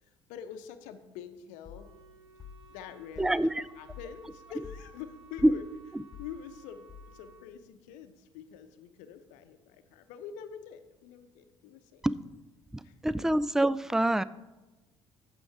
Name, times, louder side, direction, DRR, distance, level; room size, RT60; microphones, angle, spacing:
voice 1, 0.0-1.9 2.7-5.6 6.2-12.0 12.8-13.3, left 8 dB, 60° left, 9 dB, 0.7 m, -46 dB
sound 1, 1.6-7.5, left 7 dB, 25° left, 1.4 m, -50 dB
Wind instrument woodwind instrument, 1.7-7.5, right 4 dB, 80° right, 0.6 m, -57 dB
voice 2, 3.2-3.6 5.4-5.5 12.0-12.2 12.7-14.2, right 1 dB, 5° right, 18 dB, 0.3 m, -25 dB
8.7 x 7.1 x 4.6 m, 1.1 s
figure-of-eight pair, 55°, 15 cm